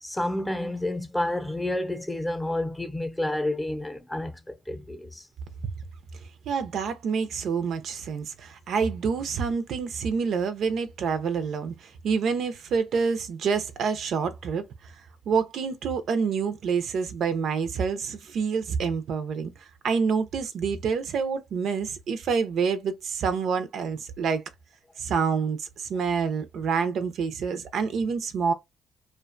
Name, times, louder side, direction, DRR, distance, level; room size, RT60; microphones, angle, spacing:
voice 1, 0.0-5.3, left 1 dB, 10° left, 0.6 m, -30 dB
voice 2, 6.5-24.4 25.0-28.5, right 5 dB, 70° right, 0.5 m, -27 dB
2.4 x 2.2 x 2.4 m
cardioid pair, 90°, 0 cm